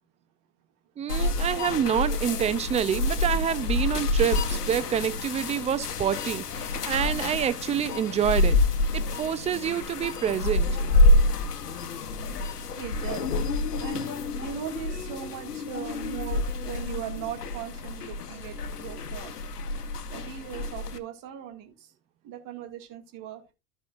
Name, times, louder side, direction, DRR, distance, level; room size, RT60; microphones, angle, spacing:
voice 1, 1.0-8.6 8.9-10.7, right 9 dB, 15° right, 0.4 m, -27 dB
sound 1, 1.1-21.0, left 2 dB, 90° left, 1.0 m, -27 dB
voice 2, 12.8-13.3 13.8-14.1 14.4-19.3 20.1-21.7 22.2-23.5, right 9 dB, 45° right, 1.9 m, -38 dB
15.0 x 5.6 x 2.3 m
hypercardioid pair, 90°, 45 cm